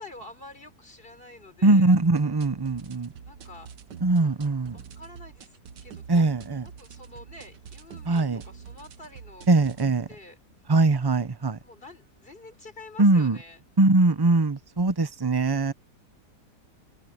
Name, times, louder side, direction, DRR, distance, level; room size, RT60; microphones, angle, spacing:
voice 1, 0.0-1.9 3.2-3.7 4.7-5.5 5.8-6.3 6.8-9.7 10.1-10.4 11.6-13.6, left 2 dB, 30° left, 4.7 m, -47 dB
voice 2, 1.6-3.1 4.0-4.8 6.1-6.7 8.1-8.4 9.5-10.1 10.7-11.6 13.0-13.4 13.8-15.7, right 2 dB, 40° right, 0.3 m, -21 dB
sound 1, 1.9-9.9, right 7 dB, 80° right, 1.8 m, -46 dB
omnidirectional pair, 1.8 m